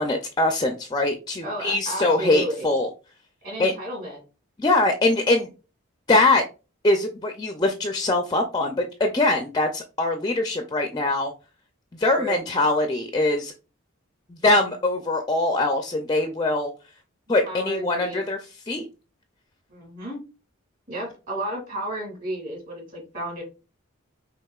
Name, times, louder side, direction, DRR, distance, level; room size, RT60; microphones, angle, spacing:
voice 1, 0.0-2.9 3.6-3.7 4.6-5.5 6.1-6.4 6.8-11.3 12.0-13.5 14.3-16.7 17.3-18.4 18.7-18.9, left 2 dB, 20° left, 4 dB, 0.4 m, -22 dB
voice 2, 1.4-2.7 3.4-4.2 12.2-12.4 17.4-18.2 19.7-20.2 20.9-23.4, right 1 dB, 40° right, 0 dB, 2.2 m, -32 dB
5.5 x 3.4 x 2.3 m, 0.31 s
head